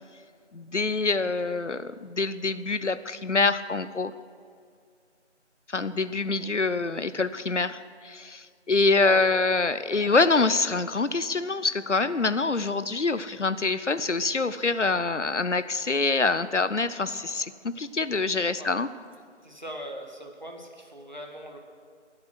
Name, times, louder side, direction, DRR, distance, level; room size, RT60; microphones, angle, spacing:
voice 1, 0.5-4.1 5.7-18.9, left 3 dB, 75° left, 14 dB, 0.8 m, -25 dB
voice 2, 1.4-1.8 6.4-6.8 9.0-9.2 18.6-18.8 19.4-21.6, right 1 dB, 40° right, 2 dB, 1.7 m, -41 dB
21.0 x 7.9 x 6.2 m, 2.2 s
figure-of-eight pair, 175°, 36 cm